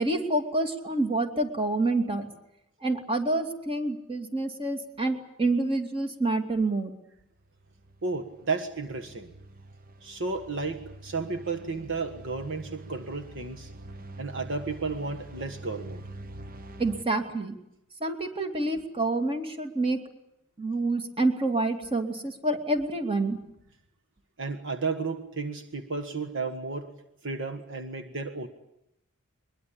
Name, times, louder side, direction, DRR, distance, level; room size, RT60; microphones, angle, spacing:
voice 1, 0.0-2.3 2.8-6.9 16.8-17.5 18.0-20.0 20.6-23.4, right 2 dB, 25° right, 6 dB, 2.5 m, -27 dB
sound 1, 7.4-17.0, right 1 dB, 45° right, 1.1 m, -45 dB
voice 2, 8.0-9.3 10.0-13.7 14.2-16.0 24.4-26.9 27.2-28.5, right 4 dB, 60° right, 6 dB, 1.6 m, -33 dB
22.5 x 22.0 x 8.7 m, 0.82 s
head